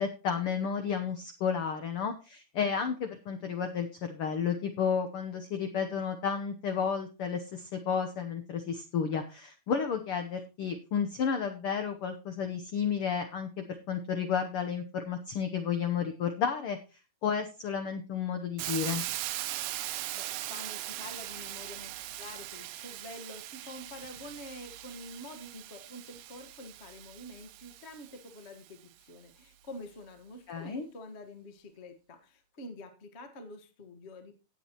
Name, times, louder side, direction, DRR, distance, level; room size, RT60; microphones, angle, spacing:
voice 1, 0.0-16.8 17.2-19.0 30.5-30.9, left 6 dB, 85° left, 7 dB, 1.2 m, -32 dB
Hiss, 18.6-28.5, right 14 dB, 80° right, 1.7 m, -40 dB
voice 2, 20.1-34.3, left 1 dB, 65° left, 7 dB, 0.6 m, -47 dB
18.0 x 7.4 x 3.0 m, 0.30 s
omnidirectional pair, 3.9 m